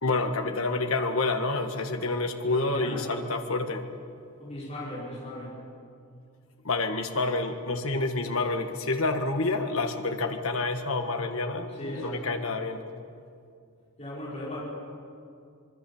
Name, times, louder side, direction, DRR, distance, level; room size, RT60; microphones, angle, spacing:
voice 1, 0.0-3.9 6.6-12.8, left 3 dB, 75° left, 5 dB, 1.7 m, -28 dB
voice 2, 2.5-3.1 4.4-5.6 11.8-12.2 14.0-14.6, equal, 30° left, -6 dB, 5.5 m, -37 dB
26.0 x 21.5 x 7.2 m, 2.4 s
head